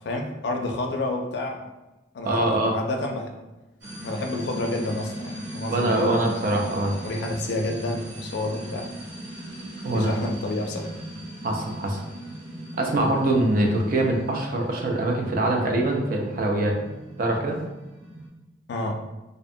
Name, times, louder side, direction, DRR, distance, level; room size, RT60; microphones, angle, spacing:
voice 1, 0.0-1.7 2.1-3.3 4.0-6.3 7.0-8.9 9.9-10.9 18.7-18.9, left 2 dB, 65° left, 3 dB, 0.4 m, -29 dB
voice 2, 2.2-2.8 5.7-6.9 9.8-10.1 11.4-12.0 12.8-16.8 17.2-17.6, right 1 dB, 50° right, 0 dB, 0.4 m, -23 dB
sound 1, 3.8-18.3, right 1 dB, 65° right, 0.8 m, -39 dB
2.6 x 2.1 x 2.6 m, 1.0 s
head